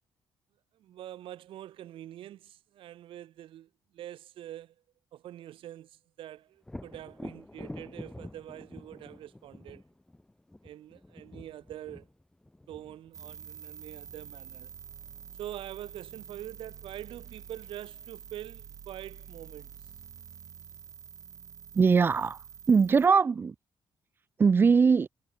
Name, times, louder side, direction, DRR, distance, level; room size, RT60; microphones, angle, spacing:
voice 1, 0.7-4.8 5.1-9.8 10.6-12.1 12.7-14.7 15.4-19.7, right 12 dB, 85° right, 5.5 m, -45 dB
Thunder, 6.6-14.3 17.9-18.0 18.5-19.4, left 1 dB, 5° left, 2.4 m, -47 dB
sound 1, 13.1-23.1, right 7 dB, 40° right, 6.2 m, -48 dB
voice 2, 21.7-22.4 22.7-23.5 24.4-25.1, right 5 dB, 25° right, 0.6 m, -21 dB
cardioid pair, 180°, 9 cm